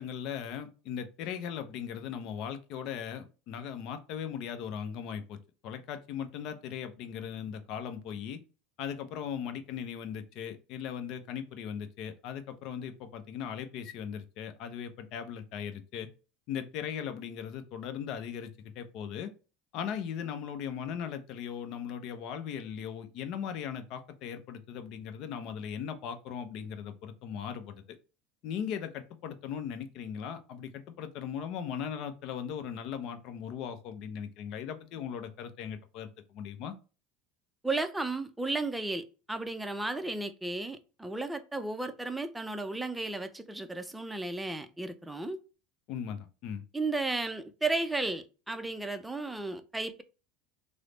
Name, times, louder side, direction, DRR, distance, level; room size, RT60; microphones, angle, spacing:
voice 1, 0.0-5.4 5.6-8.4 8.8-16.1 16.5-19.3 19.7-27.8 28.4-36.7 45.9-46.6, left 8 dB, 60° left, 0.5 m, -38 dB
voice 2, 37.6-45.4 46.7-50.0, right 2 dB, 10° right, 0.4 m, -34 dB
3.2 x 2.0 x 3.8 m
hypercardioid pair, 95°, 0 cm